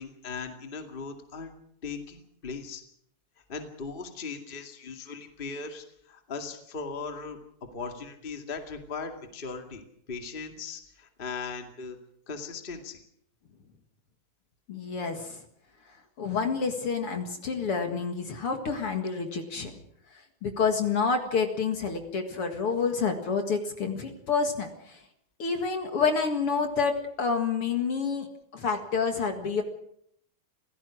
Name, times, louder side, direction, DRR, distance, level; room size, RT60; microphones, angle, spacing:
voice 1, 0.0-1.5 1.8-2.8 3.5-12.0 12.3-13.0, left 4 dB, 20° left, 5 dB, 2.0 m, -38 dB
voice 2, 14.7-15.4 16.2-19.7 20.4-25.0 25.4-28.3 28.5-29.6, left 5 dB, 50° left, 5 dB, 2.5 m, -28 dB
25.5 x 17.0 x 6.3 m, 0.71 s
omnidirectional pair, 3.5 m